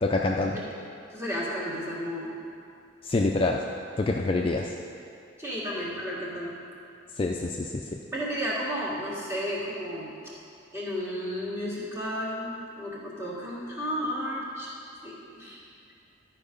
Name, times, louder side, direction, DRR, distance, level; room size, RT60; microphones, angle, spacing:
voice 1, 0.0-0.6 3.0-3.6 4.0-4.7 7.2-7.8, left 2 dB, 30° left, 0 dB, 0.3 m, -26 dB
voice 2, 1.1-2.4 5.4-6.6 8.1-10.1 10.7-14.7 15.0-15.6, equal, 15° right, -7 dB, 1.7 m, -33 dB
11.5 x 4.7 x 5.2 m, 2.5 s
head